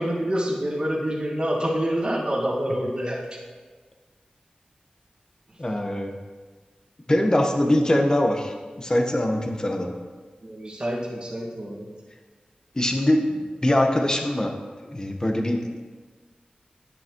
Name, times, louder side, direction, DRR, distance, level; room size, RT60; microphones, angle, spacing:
voice 1, 0.0-3.4 10.4-11.9, equal, 35° right, -5 dB, 1.7 m, -27 dB
voice 2, 5.6-6.1 7.1-9.9 12.8-14.5 14.9-15.6, left 1 dB, 25° left, 3 dB, 1.1 m, -22 dB
10.0 x 9.3 x 3.0 m, 1.4 s
wide cardioid pair, 70°, 3 cm